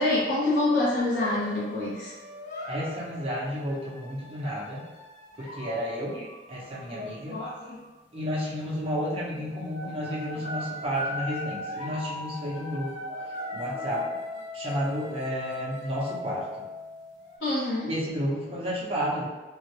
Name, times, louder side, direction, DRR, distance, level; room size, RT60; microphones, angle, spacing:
voice 1, 0.0-2.1 6.1-6.2 6.9-7.8 10.5-10.6 13.1-14.0 17.4-17.9, left 2 dB, 85° left, -9 dB, 0.8 m, -28 dB
sound 1, 1.0-7.9 8.7-9.0 9.4-17.4, left 2 dB, 45° left, 0.7 m, -39 dB
voice 2, 2.7-4.8 5.4-6.2 6.5-7.4 8.1-13.0 13.5-14.1 14.5-16.5 17.9-19.3, equal, 30° right, -6 dB, 0.8 m, -31 dB
3.5 x 2.2 x 3.1 m, 1.2 s
head